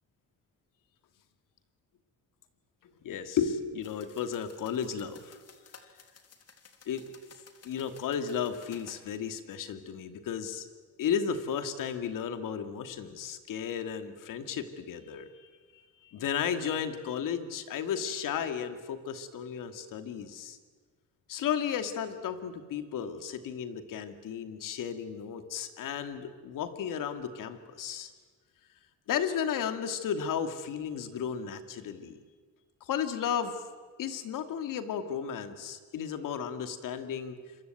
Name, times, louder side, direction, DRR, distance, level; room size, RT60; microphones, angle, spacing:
voice 1, 3.0-5.4 6.9-7.1 7.6-10.7 11.0-20.6 21.3-28.1 29.1-32.2 32.8-33.6 34.0-37.4, left 8 dB, 85° left, 10 dB, 2.5 m, -34 dB
sound 1, 3.8-9.0, left 6 dB, 50° left, 3.3 m, -56 dB
27.0 x 23.0 x 9.3 m, 1.5 s
cardioid pair, 100°, 31 cm